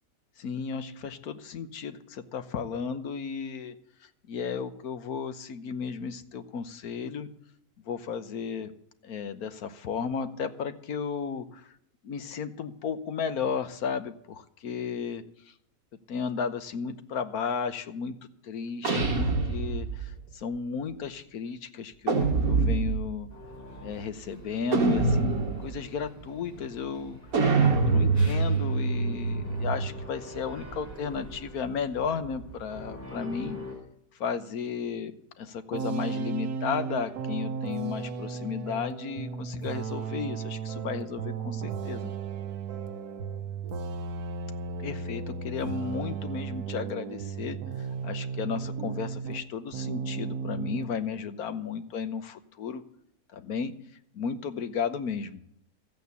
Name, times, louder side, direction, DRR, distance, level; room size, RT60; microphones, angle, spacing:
voice 1, 0.4-3.7 4.0-7.3 7.8-8.7 9.0-11.7 12.0-15.5 16.1-18.2 18.4-23.3 23.8-27.2 27.8-33.6 34.2-42.1 44.8-47.6 48.0-52.8 53.3-53.7 54.1-55.4, left 6 dB, 80° left, 11 dB, 1.5 m, -34 dB
sound 1, 18.8-20.1 22.1-23.2 24.7-25.8 27.3-30.0, right 3 dB, 70° right, 2.4 m, -25 dB
sound 2, 23.3-33.7, equal, 10° left, 4.3 m, -45 dB
sound 3, 35.7-49.5 49.7-50.9, right 5 dB, 85° right, 1.4 m, -35 dB
14.5 x 8.5 x 8.2 m, 0.71 s
omnidirectional pair, 1.6 m